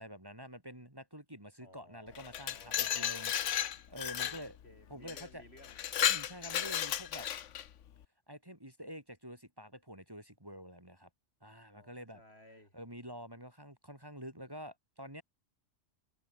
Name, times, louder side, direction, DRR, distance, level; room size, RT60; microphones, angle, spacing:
voice 1, 0.0-3.3 3.9-4.6 4.9-5.4 6.1-7.3 8.3-11.1 11.4-12.2 12.7-15.2, equal, 20° right, 5.0 m, -48 dB
voice 2, 1.6-3.4 4.2-5.8 11.7-12.8, left 1 dB, 55° left, 8.3 m, -58 dB
Glass, 2.1-4.4 5.1-5.2 5.6-7.7, left 10 dB, 80° left, 1.2 m, -33 dB
omnidirectional pair, 1.2 m